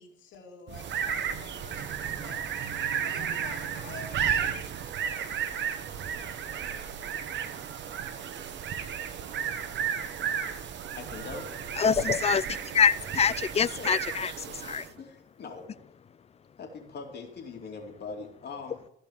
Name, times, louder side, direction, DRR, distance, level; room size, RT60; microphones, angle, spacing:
voice 1, 0.0-2.4 3.0-4.5, left 4 dB, 75° left, 1 dB, 2.5 m, -47 dB
sound 1, 0.7-15.0, right 8 dB, 65° right, 1.1 m, -33 dB
voice 2, 10.9-11.5 13.5-13.9 15.0-15.8 16.6-18.9, left 4 dB, 55° left, 1 dB, 2.8 m, -42 dB
voice 3, 11.8-14.3 14.6-14.9, left 7 dB, 30° left, 18 dB, 0.5 m, -25 dB
14.0 x 5.3 x 7.2 m, 0.76 s
cardioid pair, 90°, 20 cm